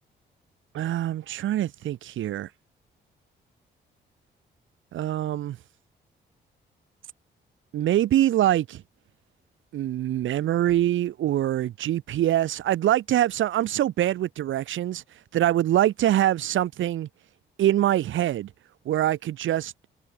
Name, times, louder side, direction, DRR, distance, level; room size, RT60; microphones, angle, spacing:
voice 1, 0.7-2.5 4.9-5.6 7.7-8.8 9.7-15.0 15.3-17.1 17.6-18.5 18.8-19.7, right 12 dB, 85° right, 4.4 m, -24 dB
open air
cardioid pair, 70°, 20 cm